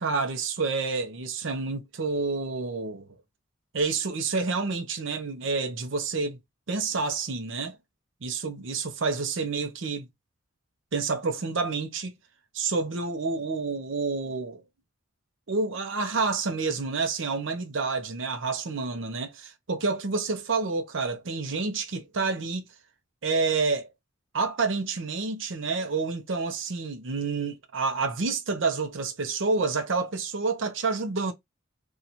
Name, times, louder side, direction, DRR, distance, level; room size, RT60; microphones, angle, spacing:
voice 1, 0.0-3.1 3.7-6.4 6.7-7.8 8.2-10.1 10.9-12.1 12.5-14.6 15.5-22.6 23.2-23.9 24.3-31.3, right 4 dB, 70° right, 0.7 m, -29 dB
2.9 x 2.4 x 4.0 m
head